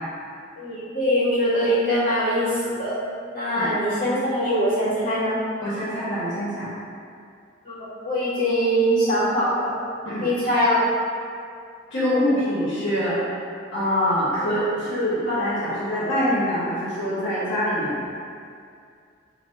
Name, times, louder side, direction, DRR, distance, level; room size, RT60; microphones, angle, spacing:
voice 1, 0.6-3.0 3.3-5.4 7.6-9.7 10.2-10.8, equal, 45° left, -10 dB, 1.5 m, -22 dB
voice 2, 5.6-6.7 10.0-10.3 11.9-13.4 13.7-18.0, equal, 80° left, -10 dB, 1.1 m, -24 dB
3.5 x 2.4 x 4.4 m, 2.3 s
head